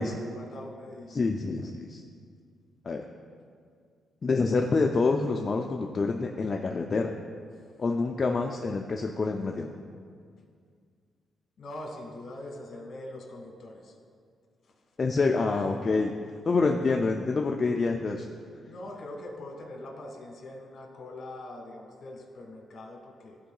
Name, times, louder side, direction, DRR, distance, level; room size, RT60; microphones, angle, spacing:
voice 1, 0.0-1.2 11.6-13.9 14.6-14.7 15.7-15.9 16.6-17.0 18.7-23.4, left 1 dB, 55° left, 1 dB, 1.5 m, -43 dB
voice 2, 1.1-2.0 2.9-3.0 4.2-7.1 7.8-9.7 15.0-16.1 16.4-18.3, left 3 dB, 40° left, 2 dB, 0.4 m, -27 dB
13.5 x 4.5 x 2.3 m, 2.1 s
cardioid pair, 95°, 0 cm